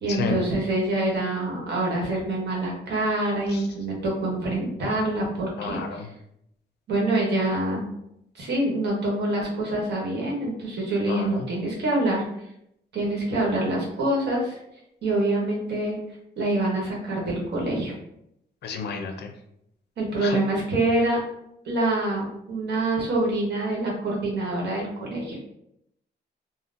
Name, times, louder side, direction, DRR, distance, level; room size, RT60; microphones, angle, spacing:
voice 1, 0.0-6.1 6.9-7.8 8.3-12.2 12.9-14.6 15.0-16.0 16.4-17.9 20.0-21.2 21.6-25.4, right 2 dB, 75° right, -2 dB, 1.1 m, -26 dB
voice 2, 5.6-6.1 11.1-11.5 18.6-19.3 20.2-20.4, left 5 dB, 75° left, 5 dB, 0.4 m, -31 dB
3.7 x 2.0 x 2.5 m, 0.77 s
wide cardioid pair, 165°, 18 cm